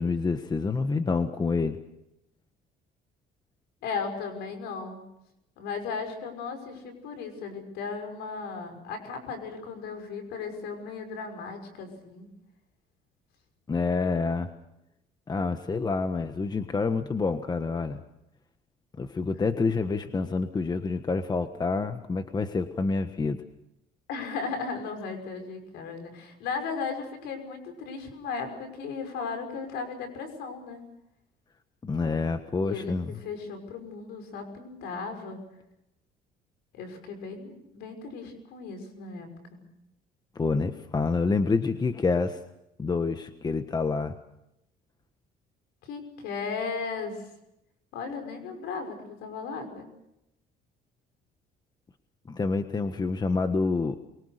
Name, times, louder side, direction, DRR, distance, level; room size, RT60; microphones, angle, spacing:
voice 1, 0.0-1.8 13.7-14.5 15.3-18.0 19.0-23.4 31.8-33.1 40.3-42.4 42.8-44.1 52.3-54.0, left 4 dB, 25° left, 9 dB, 1.3 m, -27 dB
voice 2, 3.8-5.0 5.6-12.3 24.1-30.9 32.6-35.4 36.7-39.6 45.8-47.2 47.9-49.9, left 5 dB, 90° left, 7 dB, 6.0 m, -36 dB
23.5 x 23.5 x 6.7 m, 0.84 s
cardioid pair, 110°, 17 cm